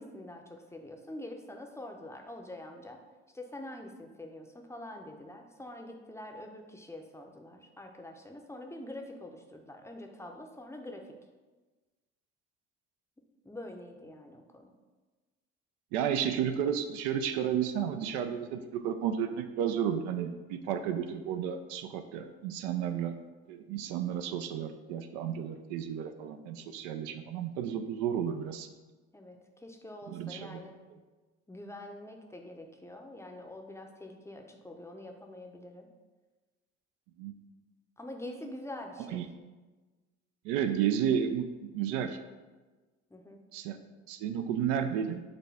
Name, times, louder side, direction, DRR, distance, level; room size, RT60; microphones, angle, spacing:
voice 1, 0.0-3.0 3.3-11.2 13.4-14.7 29.1-30.8 31.5-35.9 38.0-39.2 43.1-43.4, left 1 dB, 10° left, 3 dB, 0.6 m, -45 dB
voice 2, 15.9-23.2 23.5-28.7 30.1-30.6 30.9-31.0 37.2-37.3 39.1-39.3 40.4-42.2 43.5-43.8 44.1-45.2, right 8 dB, 80° right, 8 dB, 0.4 m, -32 dB
5.0 x 2.2 x 4.8 m, 1.3 s
supercardioid pair, 75°, 30 cm